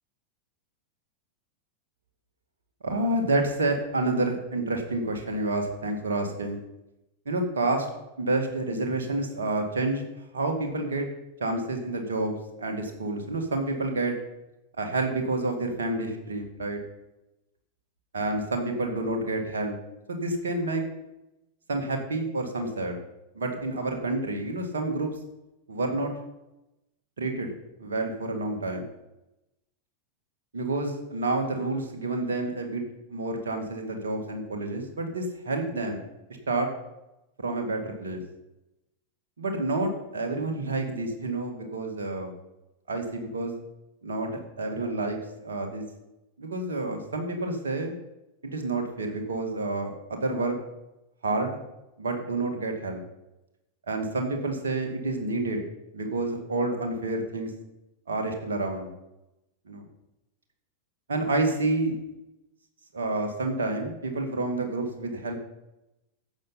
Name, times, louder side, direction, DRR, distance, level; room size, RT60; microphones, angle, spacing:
voice 1, 2.8-6.6 7.3-7.9 8.2-10.1 10.3-11.1 11.4-14.2 14.8-16.8 18.1-19.8 20.1-20.8 21.7-23.0 23.4-25.1 25.7-26.1 27.2-27.5 27.8-28.9 30.5-32.8 33.1-36.0 36.5-36.7 37.4-38.2 39.4-42.3 42.9-43.5 44.0-45.8 46.4-47.9 48.4-50.6 51.2-51.6 52.0-53.0 53.9-55.7 55.9-57.5 58.1-58.9 59.7-59.8 61.1-62.1 62.9-65.3, right 2 dB, 65° right, 3 dB, 1.9 m, -29 dB
11.5 x 7.6 x 5.7 m, 0.94 s
figure-of-eight pair, 90°, 0 cm